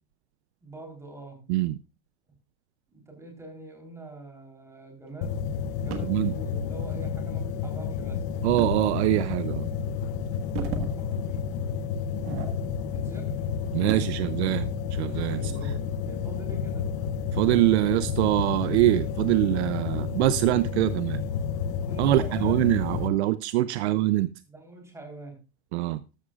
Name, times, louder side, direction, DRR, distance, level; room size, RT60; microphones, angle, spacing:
voice 1, 0.6-1.4 2.9-8.2 10.7-11.4 12.8-13.3 15.3-16.9 21.8-22.7 24.5-25.3, right 2 dB, 5° right, 3.6 m, -44 dB
sound 1, 5.2-23.1, left 7 dB, 25° left, 0.6 m, -31 dB
sound 2, 5.9-6.2 8.6-8.8 9.3-9.4 10.3-11.0 11.3-11.5 12.1-13.0 13.3-14.2 15.8-16.9 17.4-17.5 18.2-18.6, right 6 dB, 30° right, 1.6 m, -37 dB
voice 2, 8.4-9.7 13.7-15.5 17.3-21.2 22.0-24.3 25.7-26.0, right 16 dB, 50° right, 0.5 m, -24 dB
13.0 x 12.5 x 2.4 m
supercardioid pair, 165°, 42 cm